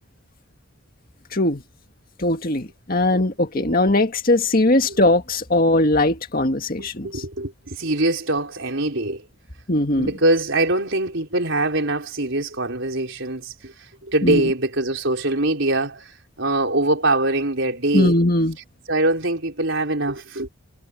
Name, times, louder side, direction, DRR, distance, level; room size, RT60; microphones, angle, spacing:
voice 1, 1.3-1.6 2.2-7.2 9.7-10.1 14.2-14.5 17.9-18.6, left 2 dB, 40° left, 2.0 m, -20 dB
voice 2, 6.8-9.2 10.0-18.1 18.9-20.5, right 2 dB, 60° right, 4.7 m, -23 dB
head